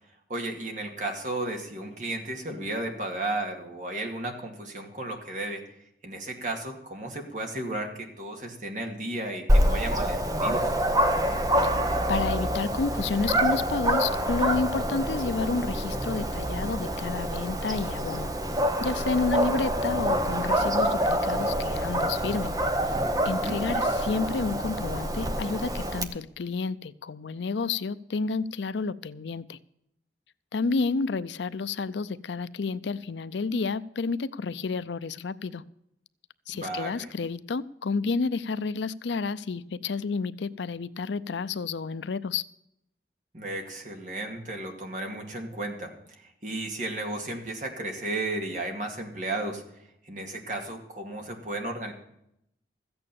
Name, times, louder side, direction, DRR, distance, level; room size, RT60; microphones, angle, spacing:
voice 1, 0.3-5.6 6.0-10.7 23.5-23.6 36.5-37.1 43.3-51.9, right 2 dB, 45° right, 3 dB, 2.2 m, -34 dB
Dog, 9.5-26.0, equal, 20° right, 0.9 m, -26 dB
voice 2, 12.1-18.3 18.8-22.6 23.2-29.6 30.5-35.6 36.5-42.4, left 4 dB, 85° left, 16 dB, 0.5 m, -30 dB
14.0 x 8.8 x 6.9 m, 0.77 s
head